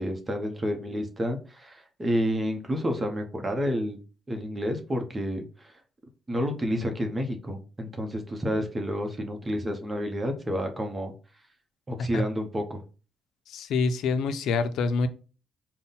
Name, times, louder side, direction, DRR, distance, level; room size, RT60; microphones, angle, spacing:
voice 1, 0.0-4.0 4.3-5.7 6.3-11.1 11.9-12.8, equal, 20° right, 0.8 m, -30 dB
voice 2, 13.5-15.1, left 4 dB, 80° left, 0.4 m, -26 dB
3.8 x 2.2 x 3.9 m
cardioid pair, 90°, 0 cm